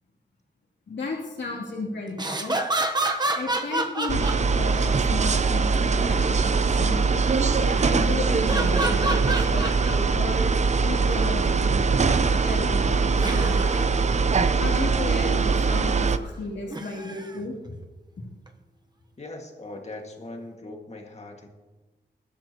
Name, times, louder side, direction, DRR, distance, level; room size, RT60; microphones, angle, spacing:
voice 1, 0.9-2.6 3.3-7.1 7.6-10.5 10.8-11.9 12.2-13.9 14.6-17.7, left 2 dB, 85° left, -4 dB, 3.0 m, -34 dB
sound 1, 2.1-4.9 7.7-8.1 8.5-10.0 10.6-10.7 13.2-13.9 16.7-17.4 18.5-18.6, right 2 dB, 25° right, 1.0 m, -29 dB
sound 2, 4.1-16.2, right 4 dB, 40° right, 0.6 m, -22 dB
voice 2, 19.2-21.5, left 2 dB, 35° left, 2 dB, 2.0 m, -40 dB
21.0 x 12.0 x 3.0 m, 1.2 s
wide cardioid pair, 110°, 18 cm